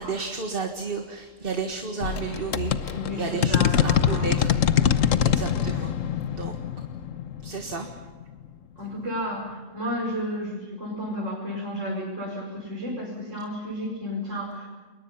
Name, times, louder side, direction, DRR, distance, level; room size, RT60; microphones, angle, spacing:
voice 1, 0.0-5.9 6.3-6.5 7.4-7.9, right 4 dB, 45° right, 3 dB, 1.8 m, -32 dB
sound 1, 2.0-8.5, left 9 dB, 75° left, 1.3 m, -24 dB
voice 2, 2.9-4.3 8.8-14.7, equal, 70° right, -4 dB, 5.4 m, -32 dB
29.5 x 22.0 x 5.6 m, 1.4 s
omnidirectional pair, 1.3 m